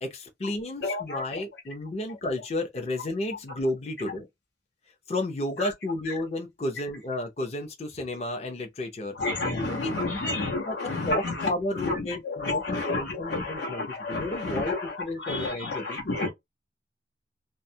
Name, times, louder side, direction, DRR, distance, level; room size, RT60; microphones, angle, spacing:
voice 1, 0.0-4.3 5.1-9.2 9.6-10.3 10.7-16.0, left 1 dB, 35° left, 0.6 m, -32 dB
voice 2, 0.8-1.2 5.6-5.7 9.1-11.5 11.7-16.3, left 2 dB, 65° left, 0.8 m, -30 dB
2.3 x 2.0 x 2.7 m
head